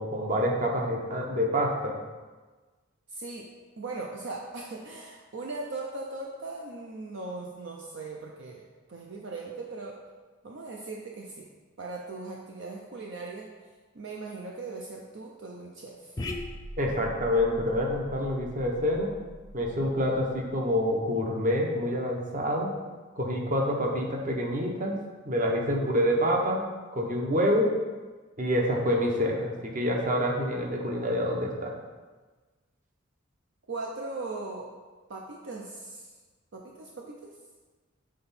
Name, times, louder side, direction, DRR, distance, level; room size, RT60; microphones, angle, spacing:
voice 1, 0.0-1.9 16.8-19.1 19.5-22.7 23.2-25.0 25.2-26.7 26.9-27.7 28.4-31.7, equal, 40° right, 0 dB, 1.0 m, -27 dB
voice 2, 3.1-3.5 3.8-10.0 10.4-11.5 11.8-13.5 13.9-16.2 33.7-34.7 35.1-36.1 36.5-37.2, right 3 dB, 60° right, -1 dB, 0.6 m, -39 dB
sound 1, 16.2-20.8, left 1 dB, 20° left, 0.4 m, -41 dB
7.5 x 3.9 x 4.2 m, 1.3 s
head